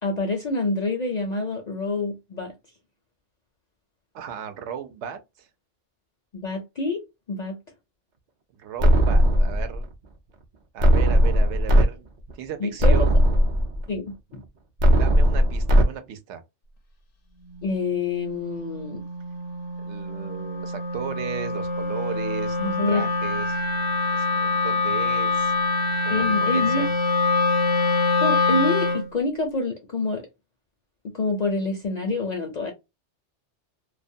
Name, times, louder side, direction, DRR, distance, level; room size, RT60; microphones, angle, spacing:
voice 1, 0.0-2.5 6.3-7.0 7.3-7.6 12.6-13.0 13.9-14.4 17.6-19.0 22.6-23.1 26.1-26.9 28.2-30.3 31.0-32.7, left 3 dB, 55° left, 0.4 m, -27 dB
voice 2, 4.1-5.5 8.5-9.9 10.7-12.1 12.3-13.2 14.9-16.4 19.8-25.5 26.2-26.9, right 9 dB, 80° right, 0.9 m, -36 dB
sound 1, 8.8-9.8 10.8-11.8 12.3-12.4 12.8-13.8 14.8-15.8, equal, 55° right, 0.5 m, -17 dB
Wind instrument woodwind instrument, 17.5-29.1, left 3 dB, 80° left, 0.9 m, -25 dB
2.4 x 2.1 x 2.5 m
omnidirectional pair, 1.2 m